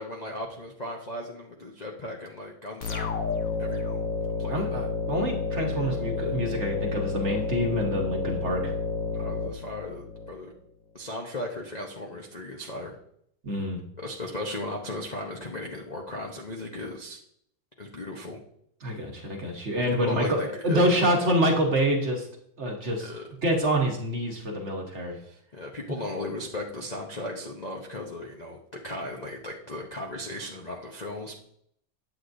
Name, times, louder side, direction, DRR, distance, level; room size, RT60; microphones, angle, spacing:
voice 1, 0.0-3.2 3.6-4.0 4.4-4.9 5.9-6.3 9.1-10.5 10.9-13.0 14.0-17.2 17.8-18.4 19.9-21.3 23.0-23.3 25.1-31.4, left 1 dB, 75° left, -1 dB, 0.3 m, -36 dB
sound 1, 2.8-10.3, left 4 dB, 55° left, 1.1 m, -30 dB
voice 2, 4.5-8.7 13.4-13.8 18.8-20.4 20.6-22.3 22.6-23.1 23.4-25.2, equal, 45° right, 1 dB, 1.1 m, -26 dB
9.3 x 7.9 x 2.6 m, 0.71 s
omnidirectional pair, 2.2 m